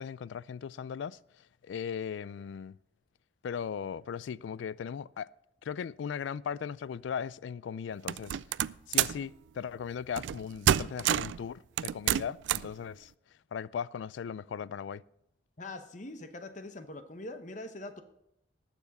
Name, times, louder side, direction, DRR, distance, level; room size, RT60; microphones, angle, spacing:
voice 1, 0.0-2.8 3.4-5.3 5.6-8.4 8.9-13.1 13.5-15.0, left 7 dB, 80° left, 0.3 m, -38 dB
sound 1, 8.1-9.2 10.2-10.4 10.7-11.4 11.8-12.7, right 10 dB, 80° right, 0.3 m, -28 dB
voice 2, 15.6-18.0, left 2 dB, 40° left, 1.0 m, -43 dB
18.5 x 7.3 x 4.1 m
head